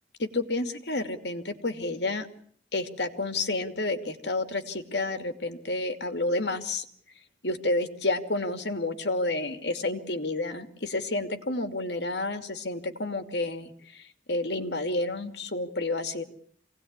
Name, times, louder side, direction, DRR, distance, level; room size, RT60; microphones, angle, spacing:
voice 1, 0.2-2.3 2.7-6.8 7.4-16.2, left 2 dB, 75° left, 8 dB, 2.7 m, -30 dB
26.5 x 18.5 x 9.7 m, 0.62 s
head